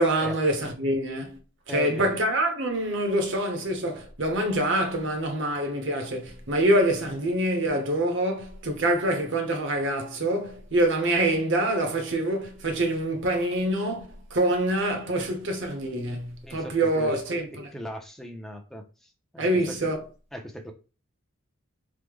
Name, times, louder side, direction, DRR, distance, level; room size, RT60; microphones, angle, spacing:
voice 1, 0.0-1.4 1.7-17.7 19.4-20.0, right 1 dB, 60° right, 0.8 m, -25 dB
voice 2, 1.7-2.2 16.4-17.1 17.7-19.9 20.3-20.7, equal, ahead, 0.4 m, -38 dB
3.1 x 2.0 x 3.4 m
head